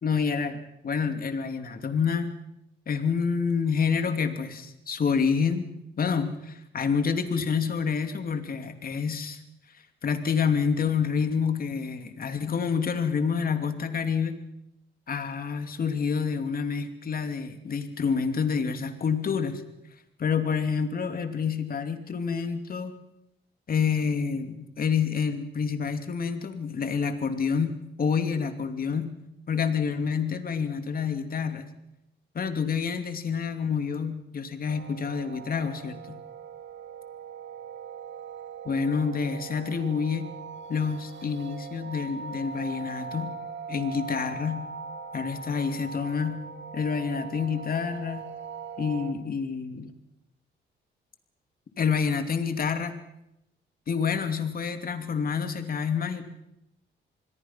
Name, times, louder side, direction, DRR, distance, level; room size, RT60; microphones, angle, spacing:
voice 1, 0.0-0.6 0.8-2.3 2.9-5.7 6.0-9.4 10.0-14.4 15.1-19.6 20.2-22.9 23.7-27.7 28.0-29.1 29.5-31.7 32.3-36.2 38.6-40.3 40.7-43.3 43.7-44.6 45.1-46.4 46.7-48.3 48.8-49.9 51.8-52.9 53.9-56.2, left 6 dB, 45° left, 7 dB, 2.8 m, -28 dB
sound 1, 34.7-49.1, right 5 dB, 70° right, 2.0 m, -41 dB
26.5 x 21.0 x 5.9 m, 0.87 s
cardioid pair, 90°, 20 cm